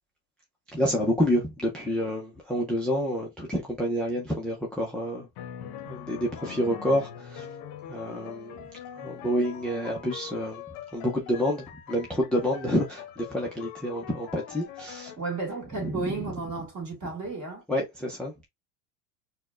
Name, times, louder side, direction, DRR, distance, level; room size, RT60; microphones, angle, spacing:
voice 1, 0.7-5.3 5.8-7.5 7.9-8.6 8.9-10.6 10.9-15.1 15.8-16.1 17.7-18.3, equal, ahead, 0.4 m, -28 dB
sound 1, 5.4-15.2, left 8 dB, 55° left, 0.7 m, -43 dB
voice 2, 15.2-17.6, right 3 dB, 35° right, 2.1 m, -33 dB
4.2 x 2.2 x 2.4 m
supercardioid pair, 120°, 45 cm